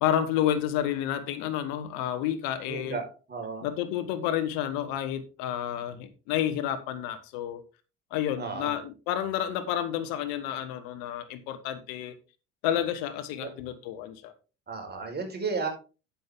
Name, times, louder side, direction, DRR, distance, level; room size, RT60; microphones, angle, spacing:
voice 1, 0.0-3.0 3.6-7.6 8.1-12.1 12.6-14.3, left 10 dB, 70° left, 9 dB, 1.3 m, -30 dB
voice 2, 2.6-3.6 8.4-8.8 13.3-13.5 14.7-15.7, right 4 dB, 30° right, 2 dB, 4.9 m, -34 dB
10.0 x 7.6 x 3.7 m, 0.33 s
hypercardioid pair, 65°, 35 cm